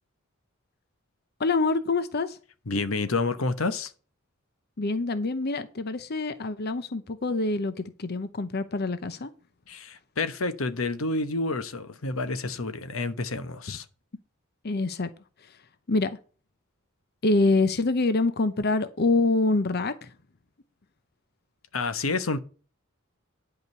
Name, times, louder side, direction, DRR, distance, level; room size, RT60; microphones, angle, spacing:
voice 1, 1.4-2.4 4.8-9.3 14.6-15.1 15.4-15.6 15.9-16.2 17.2-20.1, left 3 dB, 50° left, 0.7 m, -26 dB
voice 2, 2.7-3.9 9.7-13.8 21.7-22.4, left 3 dB, 85° left, 1.0 m, -29 dB
11.0 x 5.1 x 6.9 m
head